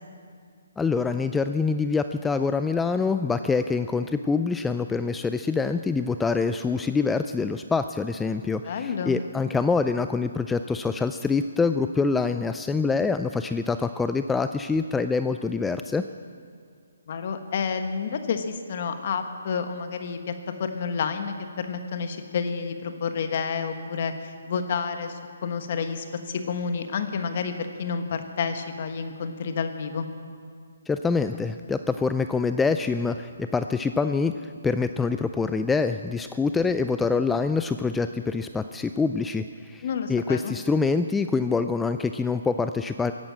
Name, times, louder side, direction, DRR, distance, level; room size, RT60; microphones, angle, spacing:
voice 1, 0.8-16.0 30.9-43.1, left 4 dB, 5° left, 9 dB, 0.3 m, -25 dB
voice 2, 8.6-9.2 17.1-20.3 20.6-27.5 27.8-30.1 39.8-40.6, left 6 dB, 50° left, 7 dB, 1.4 m, -30 dB
16.0 x 11.5 x 7.6 m, 2.2 s
hypercardioid pair, 150°, 0 cm